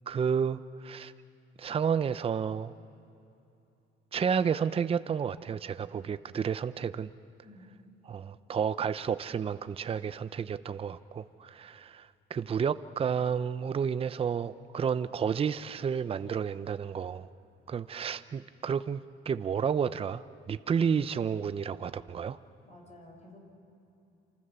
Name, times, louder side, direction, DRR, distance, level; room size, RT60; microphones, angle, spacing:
voice 1, 0.1-1.1 1.6-2.7 4.1-7.1 8.0-17.3 17.7-22.4, right 7 dB, 30° right, 13 dB, 0.6 m, -31 dB
voice 2, 22.6-23.4, left 1 dB, 35° left, 1 dB, 5.5 m, -52 dB
28.0 x 27.5 x 6.9 m, 2.8 s
cardioid pair, 135°, 20 cm